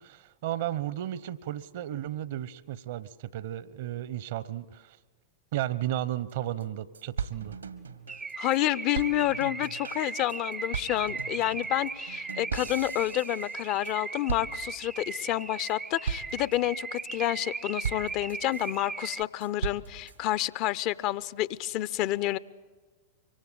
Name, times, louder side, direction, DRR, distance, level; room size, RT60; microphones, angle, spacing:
voice 1, 0.0-5.0 5.5-7.6, right 13 dB, 55° right, 18 dB, 1.1 m, -34 dB
sound 1, 6.3-6.4 6.6-6.7 6.9-8.6 8.9-14.0 14.3-15.0 15.4-15.7 16.1-16.6 17.0-17.5 17.8-18.8 19.2-20.2, right 7 dB, 75° right, 1.7 m, -38 dB
Car / Alarm, 8.1-19.2, right 4 dB, 15° right, 0.7 m, -38 dB
voice 2, 8.4-22.4, left 14 dB, 40° left, 18 dB, 0.8 m, -29 dB
25.0 x 24.5 x 8.6 m, 1.3 s
figure-of-eight pair, 90°, 0 cm